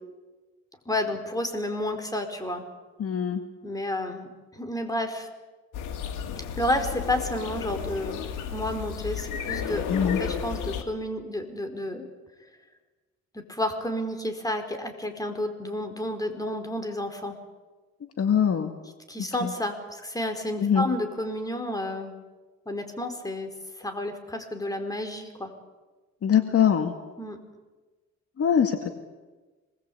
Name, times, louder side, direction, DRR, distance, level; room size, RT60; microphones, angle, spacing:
voice 1, 0.9-2.6 3.6-5.3 6.6-8.2 8.5-9.8 10.2-12.1 13.3-17.4 19.1-22.1 22.7-25.5 27.2-27.4, left 1 dB, 10° left, 5 dB, 4.6 m, -31 dB
voice 2, 3.0-3.4 9.9-10.2 18.2-18.7 19.4-19.5 20.6-20.9 26.2-26.9 28.4-28.8, left 8 dB, 50° left, 6 dB, 2.0 m, -22 dB
sound 1, 5.7-10.8, left 7 dB, 90° left, 2.6 m, -33 dB
26.5 x 20.5 x 8.6 m, 1.3 s
cardioid pair, 90°, 30 cm